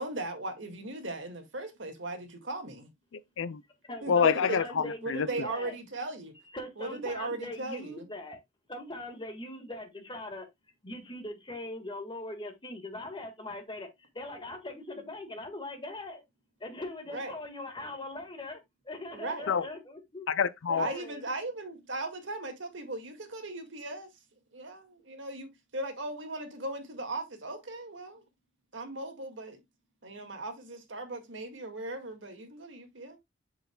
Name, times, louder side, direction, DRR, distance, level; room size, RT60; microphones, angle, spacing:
voice 1, 0.0-2.9 4.0-6.3 6.8-8.1 17.1-17.3 19.1-19.5 20.8-24.1 24.5-28.2 28.7-29.6 30.0-33.2, right 2 dB, 70° right, 1.9 m, -38 dB
voice 2, 3.1-3.6 4.1-5.3 19.5-19.7 20.3-20.9, left 6 dB, 80° left, 0.5 m, -27 dB
voice 3, 3.9-5.7 6.5-8.4 8.7-10.5 10.8-16.2 16.6-18.6 18.8-20.3 20.7-21.3, left 1 dB, 25° left, 1.6 m, -41 dB
7.9 x 6.6 x 2.2 m
head